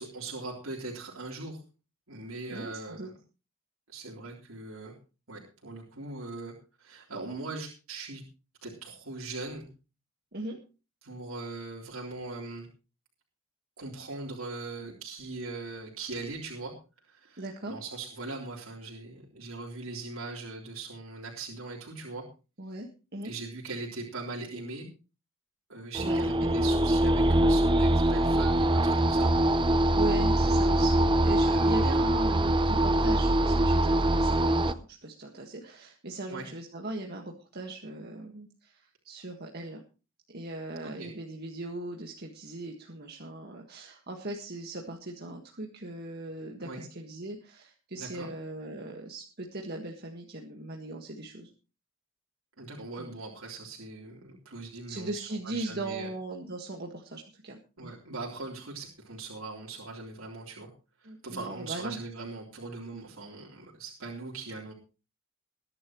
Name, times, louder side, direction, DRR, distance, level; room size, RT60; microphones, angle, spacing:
voice 1, 0.0-1.6 2.1-3.1 3.9-4.9 5.3-6.5 6.8-8.2 8.6-9.7 11.0-12.7 13.8-16.7 17.0-22.2 23.2-24.9 25.7-29.3 31.5-31.9 36.3-36.5 40.8-41.1 46.6-46.8 48.0-48.3 52.6-56.1 57.8-60.7 61.0-64.7, right 3 dB, 70° right, -3 dB, 3.6 m, -40 dB
voice 2, 2.5-3.1 10.3-10.6 17.4-17.8 22.6-23.3 26.0-26.5 29.9-39.8 40.3-51.5 53.0-53.1 54.9-57.9 61.0-62.0, right 2 dB, 50° right, 1 dB, 1.7 m, -39 dB
sound 1, 25.9-34.7, right 1 dB, 25° right, 0.6 m, -23 dB
21.0 x 11.0 x 3.1 m, 0.33 s
head